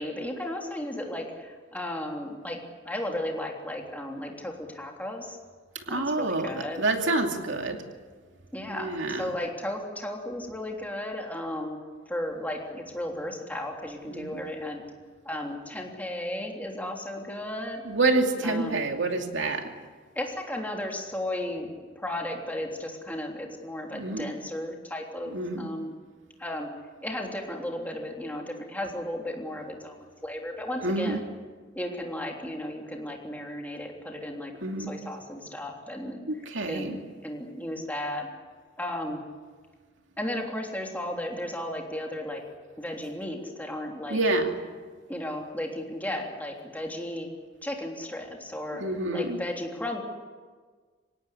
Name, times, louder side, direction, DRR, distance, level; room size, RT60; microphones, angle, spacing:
voice 1, 0.0-5.4 5.9-6.8 8.5-11.8 12.1-14.8 15.2-17.8 18.4-18.8 20.1-26.0 26.4-26.7 27.0-30.0 30.2-31.2 31.7-34.5 34.8-36.2 36.7-38.3 38.8-39.2 40.2-42.4 42.8-44.2 45.1-47.3 47.6-48.8 49.1-50.0, left 1 dB, 10° left, 0 dB, 3.3 m, -34 dB
voice 2, 5.9-7.8 8.7-9.2 14.1-14.3 17.9-19.7 23.9-24.3 25.3-25.7 30.8-31.2 34.6-34.9 36.3-37.0 44.1-44.5 48.8-49.4, right 2 dB, 75° right, 3 dB, 2.6 m, -27 dB
25.5 x 17.5 x 10.0 m, 1.5 s
head